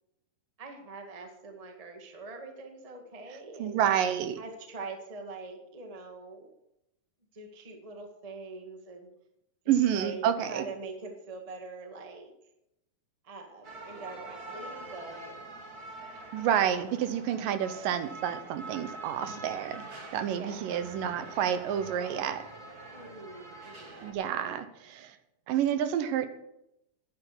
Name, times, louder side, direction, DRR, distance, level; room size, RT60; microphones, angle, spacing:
voice 1, 0.6-3.8 4.4-6.5 7.3-9.1 9.9-12.3 13.2-15.3 16.7-16.9 20.4-20.9 22.9-24.2, right 3 dB, 25° right, 4 dB, 0.8 m, -44 dB
voice 2, 3.6-4.4 9.7-10.7 16.3-19.8 20.1-22.4 24.0-25.2 25.5-26.3, right 9 dB, 80° right, 11 dB, 2.5 m, -29 dB
sound 1, 13.6-24.1, right 2 dB, 40° right, 1.4 m, -45 dB
10.0 x 9.9 x 7.0 m, 0.84 s
omnidirectional pair, 4.0 m